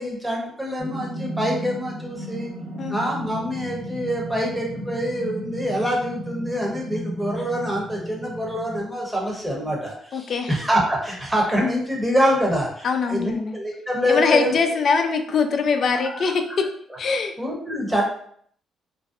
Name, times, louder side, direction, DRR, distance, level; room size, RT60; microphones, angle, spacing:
voice 1, 0.0-2.5 2.9-14.6 16.2-16.3 17.4-18.0, equal, 10° right, -2 dB, 0.8 m, -25 dB
sound 1, 0.8-8.8, right 1 dB, 50° right, 0.7 m, -34 dB
voice 2, 10.1-10.5 12.8-13.5 14.1-16.7 17.0-17.3, left 5 dB, 55° left, 6 dB, 0.3 m, -22 dB
2.5 x 2.0 x 2.4 m, 0.62 s
cardioid pair, 90°, 0 cm